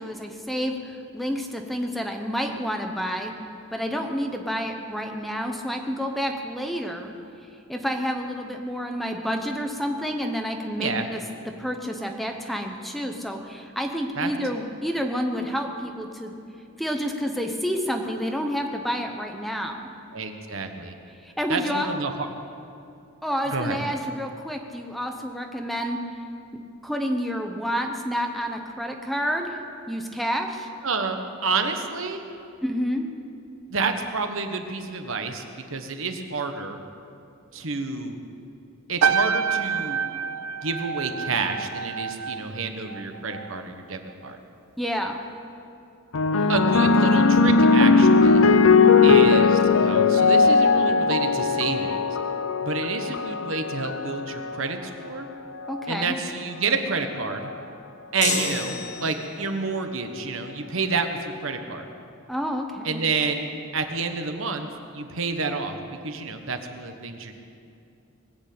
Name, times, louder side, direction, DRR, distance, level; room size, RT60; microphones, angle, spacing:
voice 1, 0.0-3.3 3.7-7.1 7.7-11.2 11.6-16.4 16.8-19.9 21.2-21.9 23.2-26.0 26.8-29.6 29.9-30.7 32.6-33.1 44.8-45.2 46.4-46.5 48.8-49.2 55.7-56.1 62.3-63.0, equal, ahead, 3 dB, 1.0 m, -29 dB
voice 2, 20.1-21.0 21.5-22.3 23.5-23.8 30.8-32.2 33.7-35.4 35.7-36.8 37.5-38.2 38.9-40.0 40.6-44.4 46.5-48.4 49.0-52.0 52.6-55.3 55.9-57.5 58.1-61.9 62.8-64.7 64.9-67.3, right 4 dB, 70° right, 6 dB, 1.3 m, -29 dB
sound 1, 39.0-43.6 43.9-44.3, right 6 dB, 85° right, 0.5 m, -27 dB
sound 2, 46.1-54.7 55.6-56.0, left 4 dB, 75° left, 0.6 m, -19 dB
sound 3, 58.2-59.5, left 4 dB, 35° left, 1.7 m, -29 dB
20.5 x 8.3 x 8.5 m, 2.6 s
head